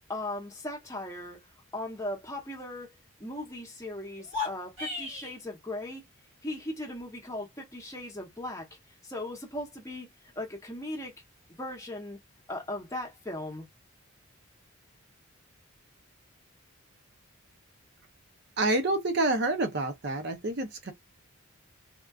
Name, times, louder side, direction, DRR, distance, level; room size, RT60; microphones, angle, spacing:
voice 1, 0.1-1.4 1.7-2.9 3.2-6.0 6.4-8.7 9.0-10.1 10.4-11.1 11.6-12.2 12.5-13.7, left 1 dB, 15° left, 0.8 m, -38 dB
sound 1, 4.2-5.4, left 3 dB, 70° right, 1.7 m, -35 dB
voice 2, 18.6-20.9, right 2 dB, 50° right, 0.6 m, -28 dB
3.6 x 2.3 x 2.3 m
head